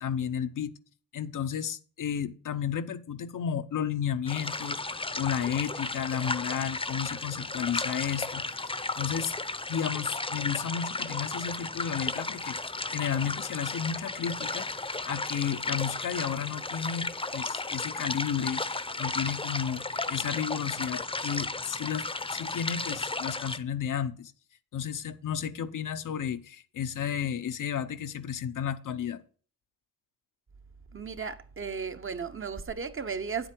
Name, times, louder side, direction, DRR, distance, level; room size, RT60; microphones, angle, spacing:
voice 1, 0.0-0.7 1.1-9.3 9.7-12.6 12.9-14.7 15.1-24.3 24.7-29.2, left 8 dB, 70° left, 0.8 m, -33 dB
sound 1, 4.3-23.6, left 3 dB, 15° left, 0.7 m, -34 dB
voice 2, 30.9-33.5, right 5 dB, 40° right, 1.0 m, -35 dB
9.2 x 8.0 x 4.5 m
cardioid pair, 60°, 32 cm